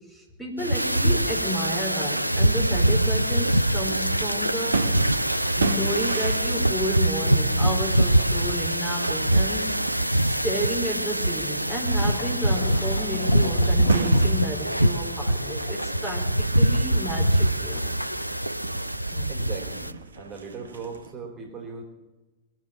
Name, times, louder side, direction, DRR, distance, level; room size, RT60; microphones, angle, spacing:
voice 1, 0.1-4.8 5.5-9.7 10.3-17.9, right 1 dB, ahead, -1 dB, 3.8 m, -32 dB
sound 1, 0.6-19.9, right 1 dB, 90° right, 0.5 m, -23 dB
sound 2, 3.2-21.1, right 4 dB, 75° right, 1.1 m, -36 dB
sound 3, 12.2-17.3, left 6 dB, 65° left, 1.0 m, -37 dB
voice 2, 19.1-21.8, right 4 dB, 30° right, 2 dB, 3.5 m, -38 dB
21.5 x 7.9 x 7.4 m, 1.1 s
figure-of-eight pair, 90°, 0 cm